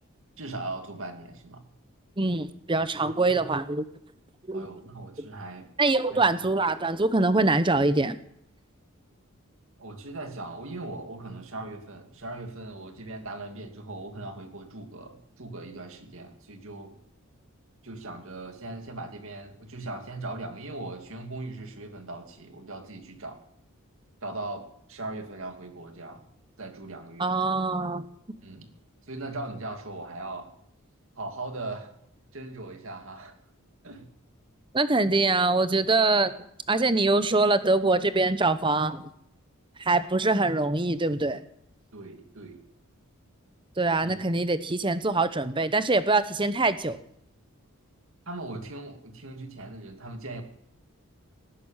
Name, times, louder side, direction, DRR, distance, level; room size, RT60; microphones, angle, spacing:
voice 1, 0.4-1.6 4.5-5.7 6.1-6.6 9.8-17.0 17.8-23.4 24.2-26.2 26.6-27.3 28.4-28.7 29.1-30.5 31.2-31.9 32.3-33.3 33.8-34.1 41.9-42.6 44.0-44.2 48.3-50.4, right 2 dB, 65° right, 5 dB, 2.5 m, -39 dB
voice 2, 2.2-3.8 4.5-4.7 5.2-5.3 5.8-8.2 27.2-28.1 34.7-36.3 36.7-39.1 39.8-41.4 43.8-47.0, right 3 dB, 20° right, 12 dB, 0.9 m, -24 dB
18.5 x 11.0 x 7.3 m, 0.71 s
head